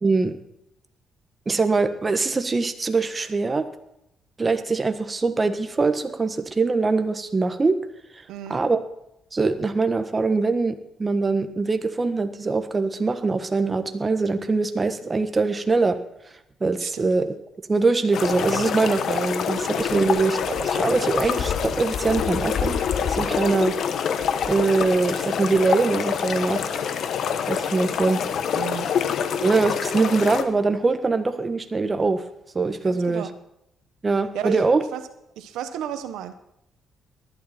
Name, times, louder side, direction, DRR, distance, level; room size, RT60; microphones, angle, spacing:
voice 1, 0.0-0.3 1.5-3.7 4.4-7.8 8.5-8.8 9.3-16.0 16.6-17.3 17.7-22.8 23.1-23.8 24.5-26.9 27.5-28.2 29.4-32.3 32.5-33.3 34.0-34.8, right 3 dB, 25° right, 8 dB, 1.4 m, -23 dB
voice 2, 8.3-8.6 16.8-17.1 19.9-20.2 28.5-28.9 32.8-33.3 34.3-34.6 34.9-35.0 35.4-36.3, right 10 dB, 90° right, 10 dB, 1.1 m, -33 dB
sound 1, 18.1-30.4, left 7 dB, 70° left, 1.2 m, -26 dB
19.0 x 12.0 x 4.4 m, 0.81 s
cardioid pair, 90°, 0 cm